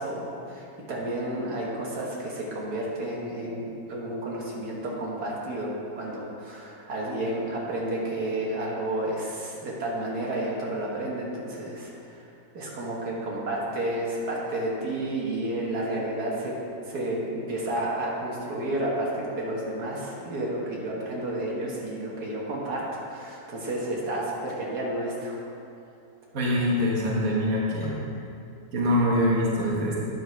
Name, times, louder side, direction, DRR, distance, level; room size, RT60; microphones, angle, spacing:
voice 1, 0.0-12.2 12.6-16.5 16.9-25.4, right 1 dB, 90° right, -4 dB, 2.0 m, -31 dB
voice 2, 26.3-28.0 28.7-30.0, left 1 dB, 65° right, -4 dB, 1.8 m, -24 dB
9.5 x 6.9 x 4.6 m, 2.5 s
omnidirectional pair, 1.6 m